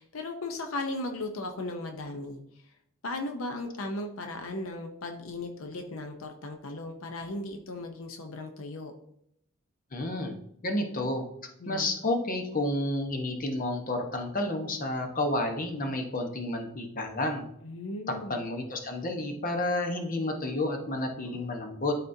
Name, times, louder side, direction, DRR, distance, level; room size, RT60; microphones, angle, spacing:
voice 1, 0.0-2.4 3.0-8.9 11.6-11.9 17.6-18.4 21.3-21.5, left 2 dB, 75° left, 4 dB, 0.7 m, -36 dB
voice 2, 9.9-10.3 10.6-11.2 11.7-17.5 18.1-22.0, left 1 dB, 40° left, 4 dB, 1.0 m, -30 dB
12.0 x 4.2 x 2.7 m, 0.76 s
head